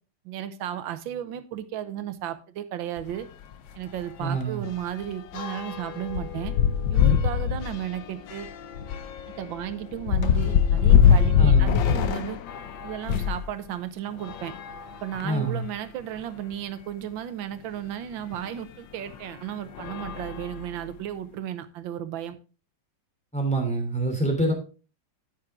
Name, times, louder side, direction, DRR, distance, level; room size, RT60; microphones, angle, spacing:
voice 1, 0.2-3.3 3.7-6.5 6.9-8.5 9.4-12.4 12.8-14.5 15.0-22.4, right 11 dB, 80° right, 1.6 m, -34 dB
sound 1, 3.0-3.2 3.5-3.6 4.0-13.4 14.2-15.5 16.2-16.3 16.5-16.6 18.3-18.5 19.1-19.3 19.7-21.0, left 8 dB, 75° left, 1.5 m, -24 dB
voice 2, 4.2-4.6 11.4-11.8 15.2-15.6 23.3-24.5, right 2 dB, 5° left, 3.0 m, -26 dB
9.4 x 9.2 x 3.6 m
omnidirectional pair, 2.1 m